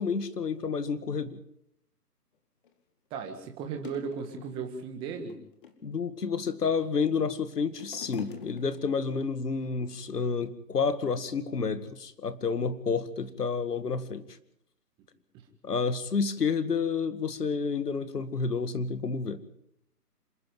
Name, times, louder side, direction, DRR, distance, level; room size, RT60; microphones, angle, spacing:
voice 1, 0.0-1.4 5.8-14.2 15.6-19.4, left 5 dB, 75° left, 13 dB, 2.1 m, -30 dB
sound 1, 2.6-2.7 3.4-3.5 3.8-4.7 5.2-5.9 6.6-7.2 7.5-9.1 9.9-10.0, left 7 dB, 30° left, 2.2 m, -45 dB
voice 2, 3.1-5.4, right 5 dB, 10° right, 5 dB, 1.6 m, -36 dB
27.0 x 11.0 x 9.3 m, 0.75 s
hypercardioid pair, 155°, 48 cm